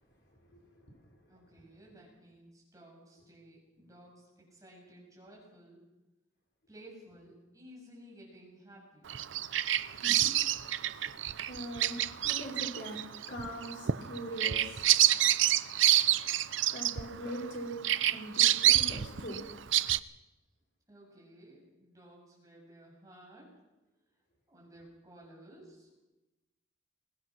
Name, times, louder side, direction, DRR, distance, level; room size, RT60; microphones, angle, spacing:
voice 1, 0.3-1.2 9.9-10.3 10.6-10.9 11.5-12.0 12.3-13.0 13.3-14.9 16.7-17.8 18.1-19.4, right 1 dB, 55° left, 0 dB, 5.3 m, -42 dB
voice 2, 1.3-5.8 6.7-9.1 20.9-23.5 24.5-26.0, right 1 dB, 15° right, -3 dB, 7.5 m, -55 dB
Bird vocalization bird call bird song, 9.1-17.5 17.8-20.0, right 13 dB, 75° right, 0.6 m, -27 dB
22.0 x 19.5 x 6.1 m, 1.0 s
head